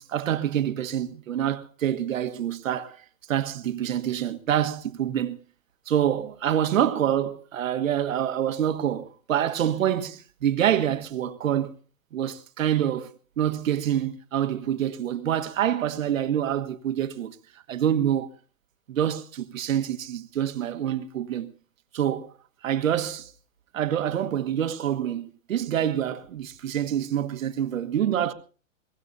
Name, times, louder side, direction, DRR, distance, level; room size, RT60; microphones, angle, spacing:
voice 1, 0.0-3.0 3.3-5.4 5.9-11.7 12.1-13.1 13.4-17.4 17.7-18.3 18.9-21.5 21.9-22.3 22.6-23.3 23.7-28.3, right 10 dB, 75° right, 1.5 m, -26 dB
23.5 x 21.0 x 2.7 m
hypercardioid pair, 150°, 40 cm